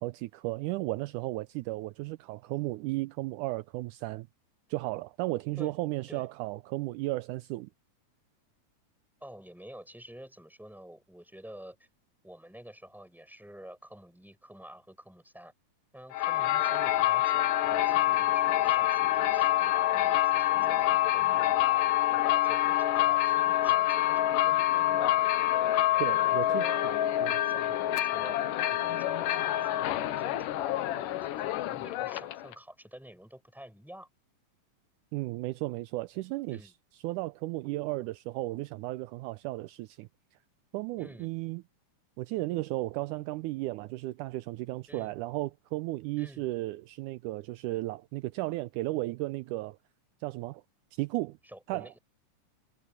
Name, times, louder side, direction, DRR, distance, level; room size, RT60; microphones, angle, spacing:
voice 1, 0.0-4.3 4.7-7.7 26.0-26.6 27.2-27.3 35.1-36.7 37.0-40.1 40.7-41.6 42.2-49.8 50.2-50.6 50.9-51.4 51.7-51.9, right 19 dB, 80° right, 2.0 m, -34 dB
voice 2, 9.2-11.9 12.2-15.5 15.9-21.9 22.2-25.2 25.9-28.4 28.7-34.1 36.5-36.7 41.0-41.3 44.9-45.2 46.2-46.4 51.4-52.0, equal, ahead, 5.8 m, -49 dB
sound 1, 16.1-32.5, left 14 dB, 85° left, 2.5 m, -26 dB
omnidirectional pair, 3.7 m